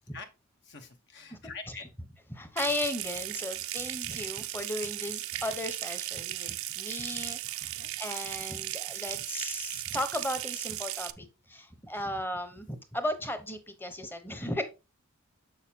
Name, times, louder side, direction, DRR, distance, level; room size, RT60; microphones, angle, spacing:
voice 1, 0.6-1.8 7.3-7.5 7.7-7.9 11.9-12.1, left 4 dB, 55° left, 1.0 m, -46 dB
voice 2, 2.3-14.6, left 1 dB, 10° left, 0.9 m, -36 dB
Water tap faucet / Sink (filling or washing) / Trickle dribble, 2.6-11.1, right 15 dB, 75° right, 0.5 m, -36 dB
6.9 x 6.5 x 2.8 m
head